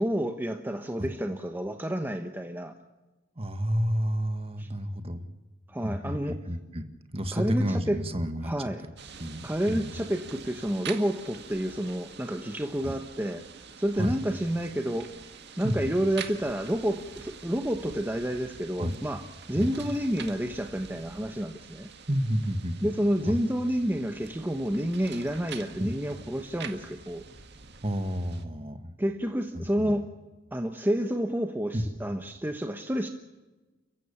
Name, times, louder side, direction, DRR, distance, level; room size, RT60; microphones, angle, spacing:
voice 1, 0.0-2.7 4.6-4.7 5.7-6.4 7.3-8.0 8.4-8.8 9.4-13.4 13.8-15.1 15.6-21.9 22.8-27.2 29.0-30.1 30.5-33.1, equal, 10° right, 5 dB, 1.1 m, -29 dB
voice 2, 3.4-5.2 5.8-8.5 9.2-9.9 12.8-13.0 14.0-14.2 15.6-15.9 18.8-19.0 19.5-19.9 22.1-22.9 23.3-23.4 25.8-26.0 27.8-28.9 29.5-30.0 31.7-31.8, equal, 30° right, 8 dB, 1.7 m, -30 dB
sound 1, 9.0-28.4, right 6 dB, 55° right, 1.9 m, -46 dB
30.0 x 15.5 x 7.2 m, 1.2 s
head